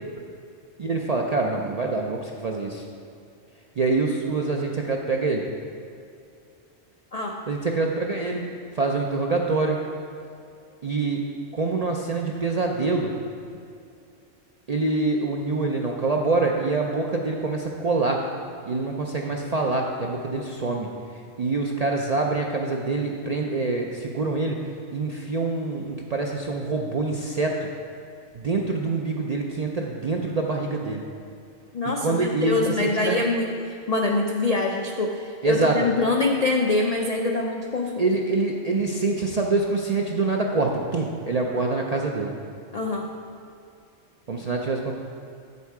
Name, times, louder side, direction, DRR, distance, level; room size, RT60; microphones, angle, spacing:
voice 1, 0.8-2.8 3.8-5.4 7.5-8.4 8.7-9.8 10.8-11.2 11.5-13.1 14.7-18.2 18.7-20.9 21.4-24.6 24.9-27.7 28.3-31.0 31.9-33.2 35.4-35.9 38.0-42.3 44.3-44.9, right 3 dB, 55° right, 0 dB, 0.4 m, -25 dB
voice 2, 31.7-38.1 42.7-43.1, left 3 dB, 60° left, 1 dB, 0.4 m, -25 dB
8.1 x 6.9 x 4.7 m, 2.5 s
omnidirectional pair, 1.3 m